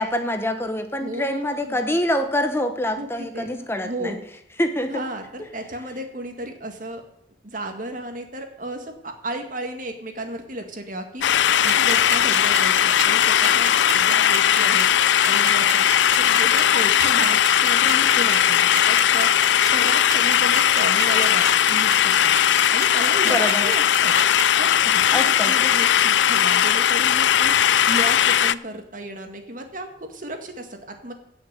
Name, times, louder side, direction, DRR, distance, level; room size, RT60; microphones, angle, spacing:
voice 1, 0.0-4.2 4.6-4.9 23.2-23.7 25.1-25.5, left 1 dB, 15° left, 6 dB, 0.9 m, -25 dB
voice 2, 1.0-1.8 3.0-4.2 4.9-7.0 7.4-11.2 11.6-14.9 15.2-15.9 16.2-19.3 19.7-22.3 22.7-24.2 24.5-27.6 27.9-31.1, right 1 dB, 45° right, 5 dB, 2.0 m, -33 dB
sound 1, 11.2-28.5, left 10 dB, 85° left, 0.4 m, -18 dB
sound 2, 11.7-24.4, right 6 dB, 75° right, 3.2 m, -30 dB
16.5 x 6.5 x 7.6 m, 0.74 s
head